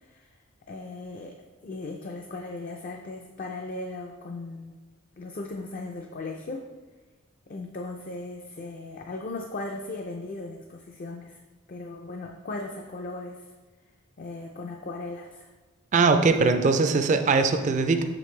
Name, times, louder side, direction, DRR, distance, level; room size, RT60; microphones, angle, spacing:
voice 1, 0.7-1.4 1.6-4.8 5.2-6.6 7.5-11.4 11.7-13.4 14.2-15.5, left 2 dB, 40° left, 2 dB, 0.4 m, -37 dB
voice 2, 15.9-18.0, right 4 dB, 35° right, 8 dB, 0.4 m, -21 dB
6.3 x 5.1 x 3.2 m, 1.3 s
head